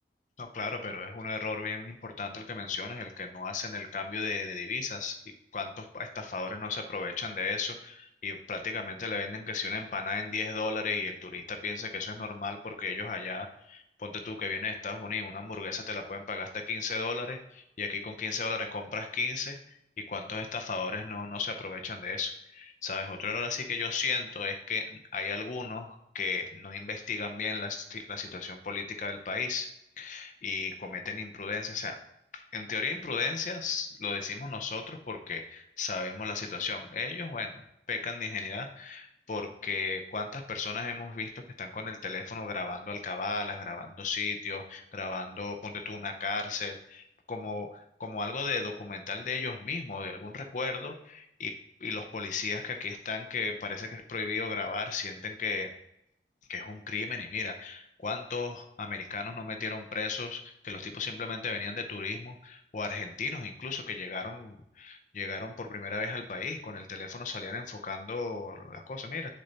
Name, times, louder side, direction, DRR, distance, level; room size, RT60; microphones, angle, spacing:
voice 1, 0.4-19.6 20.0-29.7 30.0-32.0 32.3-37.6 37.9-55.7 56.5-69.3, left 4 dB, 45° left, 5 dB, 0.5 m, -35 dB
6.4 x 4.2 x 4.0 m, 0.80 s
head